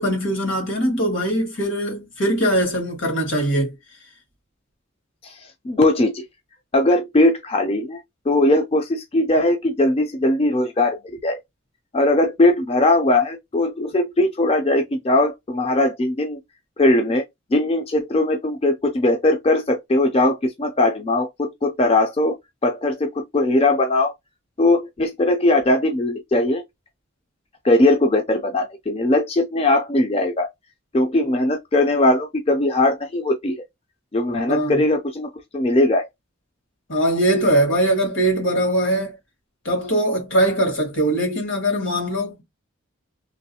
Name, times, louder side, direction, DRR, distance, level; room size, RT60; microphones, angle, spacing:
voice 1, 0.0-3.7 34.5-34.8 36.9-39.1 39.7-42.4, right 1 dB, 75° left, 1.8 m, -21 dB
voice 2, 5.2-6.2 6.7-8.0 8.3-11.4 11.9-16.4 16.8-17.2 17.5-22.3 22.6-24.1 24.6-26.6 27.6-30.5 30.9-33.6 34.1-36.1, left 2 dB, 30° left, 0.4 m, -19 dB
3.1 x 3.0 x 2.7 m
head